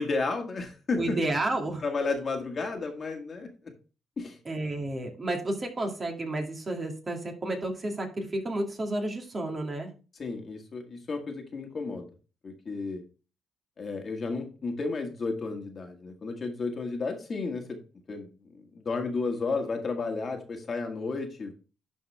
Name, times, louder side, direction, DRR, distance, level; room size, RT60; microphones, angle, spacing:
voice 1, 0.0-1.2 1.8-3.5 4.2-4.4 10.2-12.1 12.4-13.0 13.8-17.8 18.1-18.3 18.6-21.5, left 3 dB, 40° left, 4 dB, 1.8 m, -32 dB
voice 2, 1.0-1.8 4.5-9.9, right 2 dB, 30° right, 2 dB, 2.3 m, -31 dB
11.5 x 4.6 x 3.4 m, 0.34 s
cardioid pair, 90°, 0 cm